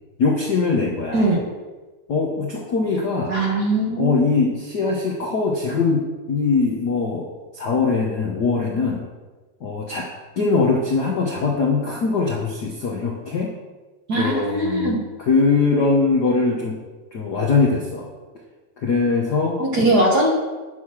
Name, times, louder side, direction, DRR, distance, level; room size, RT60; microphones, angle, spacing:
voice 1, 0.2-1.4 2.1-3.4 4.0-7.3 7.5-9.0 9.6-10.1 10.4-13.5 14.1-16.8 17.1-18.1 18.8-19.6, left 4 dB, 85° left, -1 dB, 0.9 m, -21 dB
voice 2, 1.1-1.4 3.3-4.2 14.1-15.0 19.6-20.3, right 1 dB, 45° right, -1 dB, 1.5 m, -20 dB
9.1 x 6.5 x 6.0 m, 1.3 s
omnidirectional pair, 3.4 m